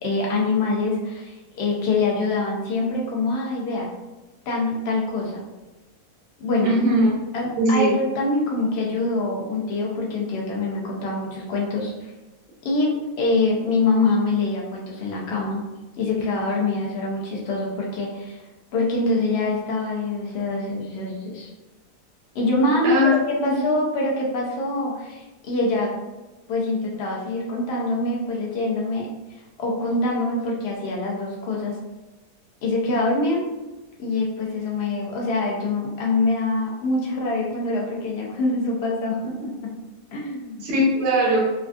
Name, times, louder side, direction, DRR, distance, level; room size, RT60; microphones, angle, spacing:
voice 1, 0.0-3.9 4.5-5.4 6.4-6.7 7.3-12.1 12.6-15.6 16.0-18.4 18.7-21.5 22.3-23.0 23.4-25.9 26.5-29.1 29.6-31.7 32.6-33.4 34.0-39.5 40.1-40.7, left 2 dB, 60° left, -2 dB, 0.6 m, -24 dB
voice 2, 6.6-7.1 7.6-7.9 22.8-23.2 23.4-23.7 40.6-41.4, equal, 60° right, -3 dB, 0.9 m, -20 dB
3.4 x 2.4 x 2.3 m, 1.1 s
omnidirectional pair, 1.7 m